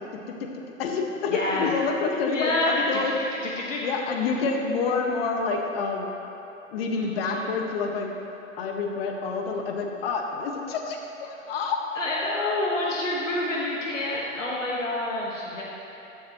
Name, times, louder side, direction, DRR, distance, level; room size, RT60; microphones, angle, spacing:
voice 1, 0.8-3.1 3.8-6.1 6.7-8.1 8.6-11.8, left 4 dB, 45° left, 2 dB, 1.7 m, -28 dB
voice 2, 1.3-1.7 2.3-2.8 3.6-3.9 6.9-7.5 12.0-15.6, left 2 dB, 70° left, -4 dB, 1.7 m, -28 dB
15.5 x 13.0 x 3.1 m, 3.0 s
figure-of-eight pair, 105°, 39 cm